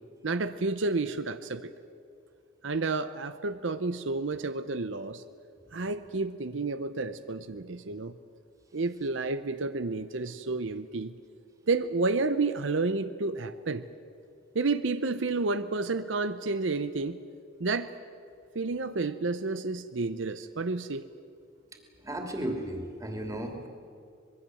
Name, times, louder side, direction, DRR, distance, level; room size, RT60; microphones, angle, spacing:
voice 1, 0.2-1.7 2.6-5.2 5.7-8.2 8.7-11.1 11.7-13.8 14.5-17.2 17.6-17.9 18.5-21.1, right 3 dB, 75° right, 11 dB, 0.8 m, -30 dB
voice 2, 21.7-23.7, right 1 dB, 15° right, 3 dB, 2.9 m, -35 dB
25.0 x 21.5 x 7.8 m, 2.5 s
head